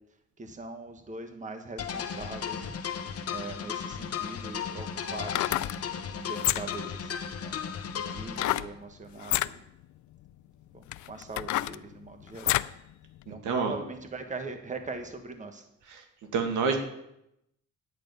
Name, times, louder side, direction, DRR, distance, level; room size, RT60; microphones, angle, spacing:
voice 1, 0.4-2.8 3.3-5.8 6.2-7.1 7.4-7.5 8.1-9.6 10.7-12.6 13.3-15.6, right 3 dB, 25° right, 6 dB, 1.4 m, -41 dB
sound 1, 1.8-8.6, left 7 dB, 50° left, 1.2 m, -35 dB
sound 2, 4.0-4.1 5.2-5.8 6.3-6.9 8.4-8.7 9.2-9.5 10.3-10.4 10.9-12.8 13.2-13.3, left 16 dB, 75° left, 0.4 m, -29 dB
voice 2, 13.3-13.7 15.9-16.0 16.3-16.8, right 5 dB, 85° right, 4 dB, 1.9 m, -28 dB
10.5 x 8.8 x 5.4 m, 0.83 s
cardioid pair, 90°, 30 cm